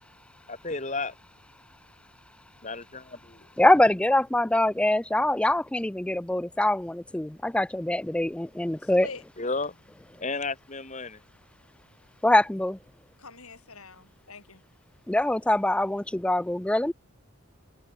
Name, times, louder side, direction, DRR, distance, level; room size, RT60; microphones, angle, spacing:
voice 1, 0.5-1.1 2.6-3.4 9.4-9.7 10.2-11.2, left 3 dB, 35° left, 2.7 m, -32 dB
voice 2, 3.6-9.1 12.2-12.8 15.1-16.9, left 1 dB, 5° left, 0.3 m, -24 dB
voice 3, 8.8-9.2 13.2-14.6, left 4 dB, 85° left, 7.6 m, -44 dB
head